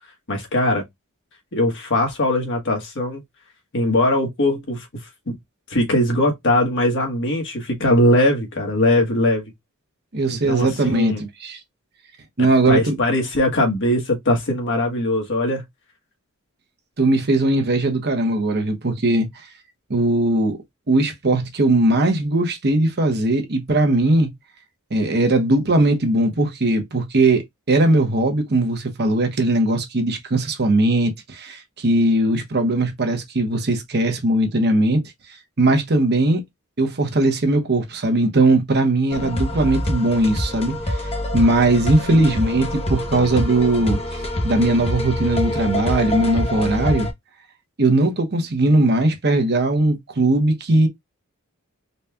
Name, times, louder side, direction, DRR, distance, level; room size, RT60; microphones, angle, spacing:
voice 1, 0.3-0.8 1.5-3.2 3.7-4.9 5.3-5.4 5.7-9.4 10.3-11.2 12.7-15.6 42.1-42.3, left 1 dB, 55° left, 1.3 m, -20 dB
voice 2, 10.1-11.6 12.4-13.0 17.0-19.5 19.9-20.6 20.9-24.3 24.9-35.0 35.6-36.4 36.8-47.1 47.8-50.9, right 2 dB, 50° right, 1.0 m, -19 dB
sound 1, 39.1-47.1, left 1 dB, 30° left, 0.9 m, -25 dB
4.1 x 2.4 x 3.4 m
head